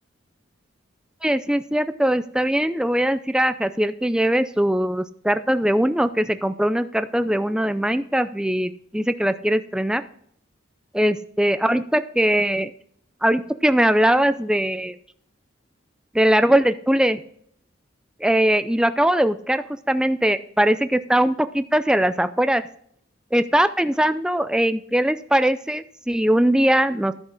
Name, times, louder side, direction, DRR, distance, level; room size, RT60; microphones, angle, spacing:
voice 1, 1.2-10.0 11.0-12.7 13.2-14.9 16.1-17.2 18.2-22.6 23.3-27.1, right 1 dB, 5° right, 11 dB, 0.4 m, -21 dB
12.5 x 6.5 x 3.9 m, 0.62 s
head